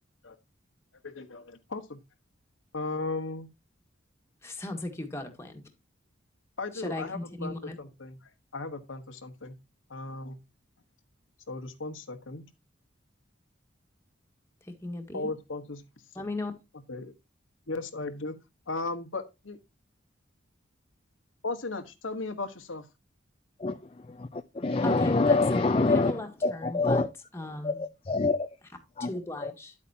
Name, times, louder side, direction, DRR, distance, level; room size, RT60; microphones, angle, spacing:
voice 1, 1.0-2.0 2.7-3.5 6.6-9.6 9.9-10.4 11.5-12.4 15.1-15.8 16.9-17.1 17.7-18.4 18.7-19.6 21.4-22.9, left 3 dB, 85° left, 1.3 m, -36 dB
voice 2, 4.4-5.6 6.7-7.8 14.7-15.3 16.1-16.5 24.8-25.6 25.9-27.0 27.3-27.8 29.1-29.7, left 2 dB, 15° left, 1.7 m, -37 dB
voice 3, 24.1-27.1 27.6-28.4 29.0-29.1 29.4-29.5, left 3 dB, 30° left, 0.5 m, -26 dB
10.0 x 8.4 x 2.8 m
head